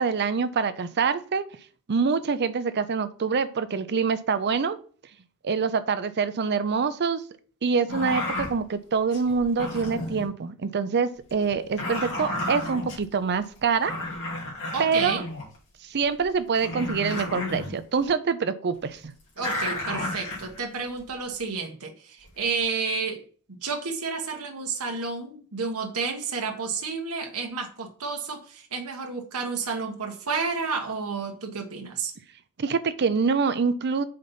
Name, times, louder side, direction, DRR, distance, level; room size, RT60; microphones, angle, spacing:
voice 1, 0.0-1.5 1.9-4.8 5.4-7.2 7.6-13.9 14.8-15.2 15.9-19.1 32.6-34.0, right 5 dB, 50° right, 13 dB, 0.5 m, -25 dB
sound 1, 7.9-8.6 9.1-10.3 11.2-13.0 13.6-13.7 13.8-15.6 16.2-16.3 16.5-17.7 19.4-21.1 22.3-22.6, left 1 dB, 60° left, 2.5 m, -32 dB
voice 2, 14.7-15.3 19.4-23.2 23.5-32.1, right 4 dB, 80° right, 3 dB, 1.2 m, -31 dB
5.1 x 4.0 x 5.6 m, 0.42 s
head